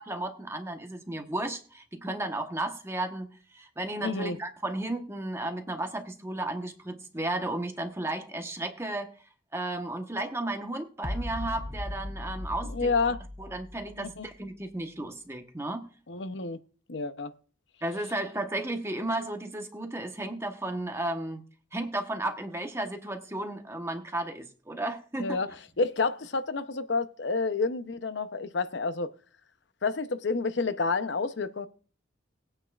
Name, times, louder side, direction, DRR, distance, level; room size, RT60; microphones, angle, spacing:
voice 1, 0.0-9.1 9.5-12.9 13.4-15.9 17.8-21.4 21.7-25.4, right 1 dB, 15° right, 1.0 m, -34 dB
voice 2, 4.0-4.4 12.6-13.2 14.0-14.3 16.1-16.6 16.9-17.3 25.2-25.5 25.8-29.1 29.8-31.7, left 4 dB, 70° left, 0.7 m, -29 dB
sound 1, 11.0-14.5, left 1 dB, 20° left, 0.5 m, -38 dB
20.0 x 8.8 x 2.4 m
head